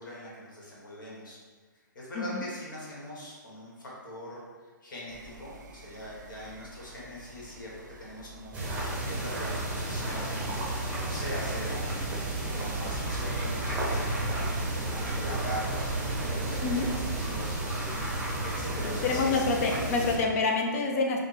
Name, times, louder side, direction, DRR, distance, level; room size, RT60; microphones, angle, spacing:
voice 1, 0.0-1.4 1.9-4.4 4.8-7.7 8.0-10.5 11.0-11.9 12.4-17.9 18.4-19.4, equal, 70° left, -5 dB, 1.4 m, -42 dB
sound 1, 5.1-19.3, right 4 dB, 60° right, 0.4 m, -41 dB
sound 2, 8.5-20.2, right 1 dB, 15° right, 0.7 m, -32 dB
voice 2, 18.8-21.2, left 3 dB, 45° left, 2 dB, 0.6 m, -27 dB
3.9 x 2.2 x 3.3 m, 1.4 s
hypercardioid pair, 130°, 11 cm